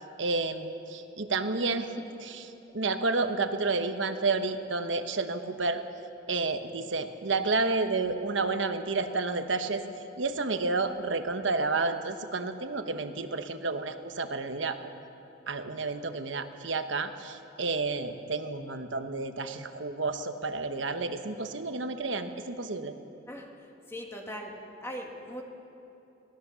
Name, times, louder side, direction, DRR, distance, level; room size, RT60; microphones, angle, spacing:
voice 1, 0.2-1.9 2.2-5.8 6.3-9.8 10.2-14.9 15.5-22.9, right 3 dB, 70° right, 8 dB, 1.2 m, -30 dB
voice 2, 23.9-25.4, equal, 15° left, 1 dB, 1.6 m, -40 dB
22.0 x 17.0 x 7.0 m, 2.9 s
head